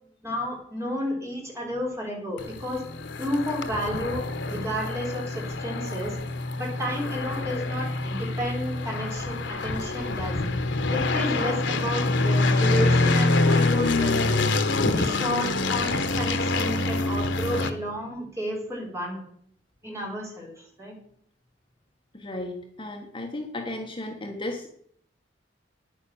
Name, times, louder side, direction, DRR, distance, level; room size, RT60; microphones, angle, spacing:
voice 1, 0.2-2.8 3.2-6.2 6.6-10.4 10.9-14.4 14.9-19.2 19.8-20.9, equal, 15° right, -2 dB, 4.7 m, -32 dB
sound 1, 2.4-17.7, left 2 dB, 70° left, 1.2 m, -25 dB
voice 2, 22.1-24.7, left 1 dB, 25° left, 2 dB, 1.3 m, -34 dB
9.9 x 9.6 x 7.1 m, 0.66 s
head